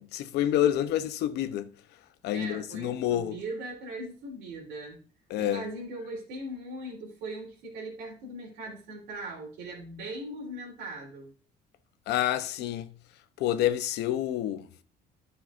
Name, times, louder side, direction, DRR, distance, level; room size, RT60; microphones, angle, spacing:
voice 1, 0.0-1.7 2.2-3.4 5.3-5.6 12.1-12.9 13.4-14.7, left 12 dB, 80° left, 0.8 m, -28 dB
voice 2, 2.3-5.0 5.4-11.3, right 1 dB, 90° right, 3.4 m, -39 dB
12.5 x 6.2 x 2.5 m
cardioid pair, 110°, 17 cm